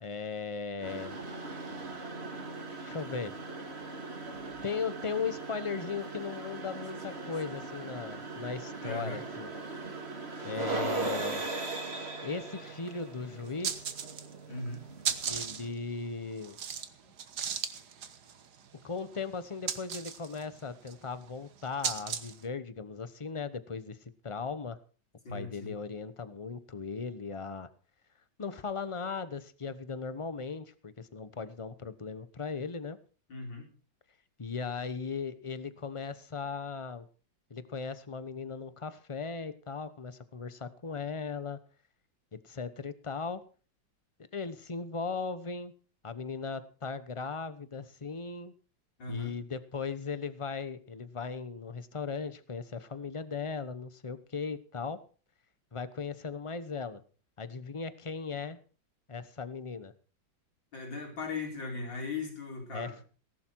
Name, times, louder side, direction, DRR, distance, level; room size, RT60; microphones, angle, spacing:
voice 1, 0.0-1.2 2.8-3.3 4.6-9.5 10.4-11.4 12.2-13.9 15.3-16.6 18.8-24.8 25.3-27.7 28.4-33.0 34.4-37.1 37.5-41.6 42.3-43.4 44.3-45.7 46.0-48.5 49.1-55.0 55.7-57.0 57.4-58.6 59.1-59.9 62.7-62.9, left 5 dB, 25° left, 13 dB, 0.7 m, -37 dB
sound 1, 0.8-15.7, right 3 dB, 35° right, 2.4 m, -39 dB
voice 2, 8.8-9.2 10.4-10.9 14.5-14.8 17.0-17.1 25.2-25.7 33.3-33.7 49.0-49.3 60.7-62.9, left 3 dB, 70° left, 1 dB, 5.1 m, -38 dB
sound 2, 12.6-12.7 13.0-13.1 13.5-14.5 14.7-22.5, right 7 dB, 60° right, 1.8 m, -37 dB
18.5 x 11.5 x 4.7 m, 0.39 s
omnidirectional pair, 2.0 m